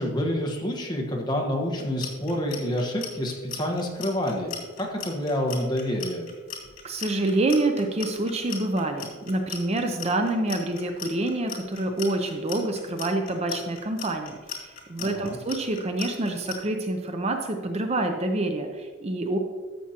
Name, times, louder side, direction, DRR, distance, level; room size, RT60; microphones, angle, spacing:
voice 1, 0.0-6.3 15.0-15.4, left 1 dB, 20° left, 0 dB, 1.3 m, -28 dB
Clock, 1.7-16.6, left 9 dB, 80° left, 2.6 m, -37 dB
voice 2, 6.8-19.4, right 2 dB, 30° right, 4 dB, 0.6 m, -27 dB
13.0 x 7.1 x 2.9 m, 1.5 s
head